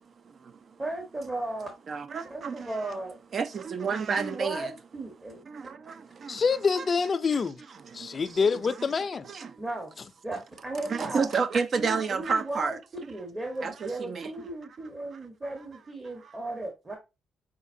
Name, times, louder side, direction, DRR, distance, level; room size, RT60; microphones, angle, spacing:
voice 1, 0.8-1.7 2.3-3.2 4.2-5.4 9.6-9.9 10.2-11.3 11.7-12.8 13.1-17.0, right 2 dB, 25° right, 1.0 m, -36 dB
voice 2, 1.9-2.7 3.3-4.7 5.5-6.4 6.8-6.9 7.9-8.2 9.3-9.6 10.9-12.8 13.6-14.3, right 5 dB, 50° right, 0.4 m, -30 dB
voice 3, 6.3-7.6 7.9-9.3, left 5 dB, 40° left, 0.4 m, -26 dB
5.6 x 2.5 x 2.6 m
cardioid pair, 90°, 0 cm